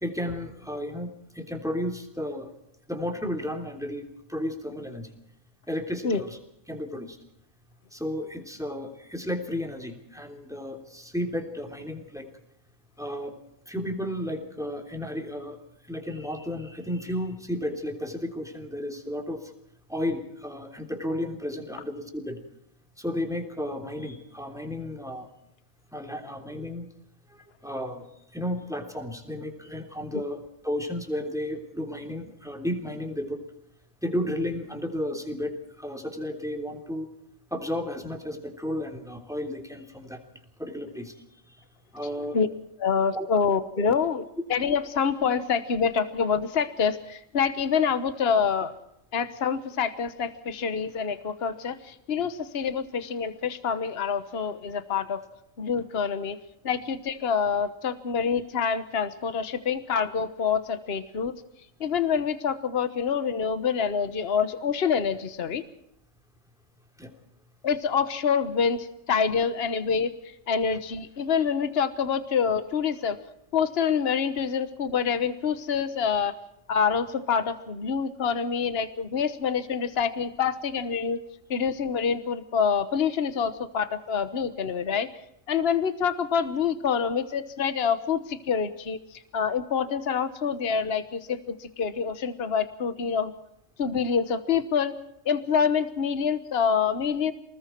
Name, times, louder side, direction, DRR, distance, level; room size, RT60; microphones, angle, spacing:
voice 1, 0.0-2.5 2.9-5.1 5.7-6.4 6.7-7.2 7.9-12.3 13.0-13.4 13.7-15.6 15.8-19.5 19.9-22.4 23.0-25.3 25.9-26.9 27.3-33.4 34.0-37.1 37.5-40.2 40.6-41.2 41.5-41.6 41.9-42.4 43.1-43.3 43.8-43.9 67.0-67.1 70.7-70.8 73.0-73.1, left 1 dB, ahead, 3 dB, 3.3 m, -33 dB
voice 2, 42.8-44.2 44.5-48.7 49.1-55.2 55.6-56.4 56.6-61.3 61.8-65.6 67.6-70.1 70.5-73.2 73.5-76.4 76.7-81.2 81.5-85.1 85.5-93.3 93.8-94.9 95.2-97.3, left 6 dB, 50° left, 11 dB, 1.4 m, -26 dB
29.0 x 20.0 x 4.6 m, 0.79 s
omnidirectional pair, 1.4 m